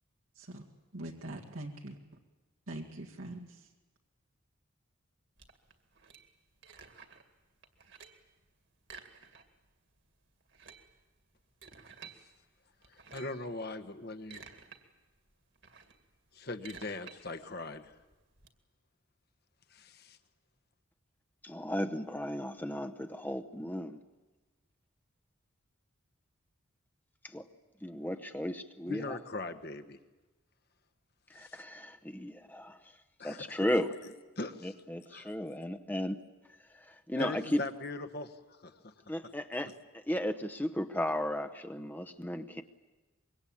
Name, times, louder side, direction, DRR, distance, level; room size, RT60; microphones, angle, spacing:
voice 1, 0.9-2.0 2.7-3.7, right 1 dB, 80° right, 0 dB, 2.0 m, -43 dB
sound 1, 5.4-7.3 7.6-8.3 8.8-9.7 10.0-10.1 10.4-12.2 12.8-13.4 14.0-14.8 15.2-18.5, right 5 dB, 55° right, 2.2 m, -53 dB
voice 2, 12.9-14.4 16.3-18.0 19.7-20.2 28.9-30.0 31.3-31.6 33.2-33.6 34.4-34.7 35.1-35.3 37.2-38.9, left 2 dB, 45° left, 8 dB, 1.3 m, -41 dB
voice 3, 21.4-24.0 27.2-27.4 27.8-29.2 31.3-32.8 33.2-33.9 34.6-36.2 36.7-37.7 39.1-42.6, left 1 dB, 10° left, 7 dB, 0.8 m, -35 dB
25.0 x 23.0 x 8.7 m, 1.2 s
head